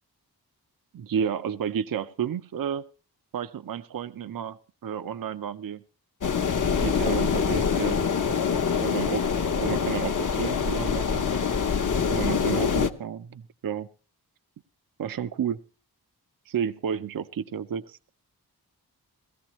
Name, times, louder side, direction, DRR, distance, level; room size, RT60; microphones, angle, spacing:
voice 1, 0.9-2.8 3.3-5.8 6.7-8.1 8.7-9.3 9.6-11.3 12.1-13.9 15.0-15.6 16.5-17.2 17.5-18.0, right 8 dB, 60° right, 13 dB, 0.6 m, -31 dB
sound 1, 6.2-12.9, left 6 dB, 50° left, 0.8 m, -25 dB
18.0 x 14.0 x 3.0 m, 0.34 s
wide cardioid pair, 90°, 39 cm